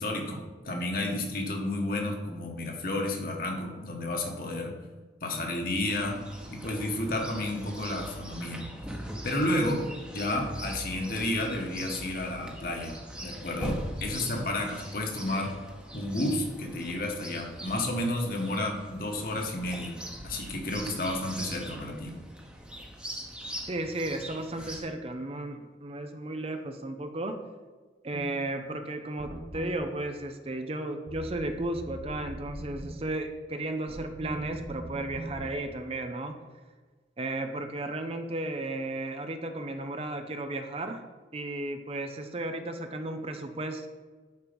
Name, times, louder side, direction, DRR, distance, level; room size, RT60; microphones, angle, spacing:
voice 1, 0.0-4.7 5.2-6.2 6.5-8.6 9.2-9.9 10.1-12.9 13.2-15.5 15.9-20.0 20.2-22.2, left 1 dB, 55° left, 1 dB, 1.6 m, -31 dB
Chirp tweet, 5.9-24.8, equal, 5° right, 1.1 m, -42 dB
voice 2, 23.7-27.4 28.0-36.4 37.2-41.0 41.3-43.9, right 2 dB, 35° right, 7 dB, 0.6 m, -34 dB
sound 1, 28.1-28.3 29.2-29.7 31.1-32.9 33.9-35.5, equal, 85° right, 1.3 m, -40 dB
10.5 x 4.6 x 5.3 m, 1.4 s
head